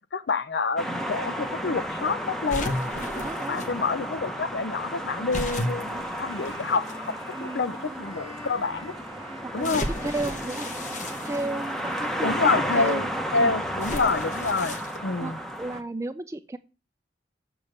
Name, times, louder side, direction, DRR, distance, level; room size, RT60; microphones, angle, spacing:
voice 1, 0.1-2.7 3.5-7.1 7.4-9.0 9.5-9.9 12.2-15.4, left 4 dB, 80° left, 0.6 m, -27 dB
sound 1, 0.8-15.8, equal, ahead, 0.8 m, -33 dB
sound 2, 2.5-3.7 5.3-7.0 7.7-7.8 9.6-12.0 13.8-15.0, left 1 dB, 45° left, 1.1 m, -34 dB
voice 2, 3.2-3.6 7.3-7.7 9.6-10.7 11.2-13.1 13.4-13.5 15.2-16.6, right 2 dB, 15° right, 0.3 m, -33 dB
Wind instrument woodwind instrument, 5.7-13.8, equal, 20° left, 4.9 m, -47 dB
7.1 x 6.0 x 6.5 m
head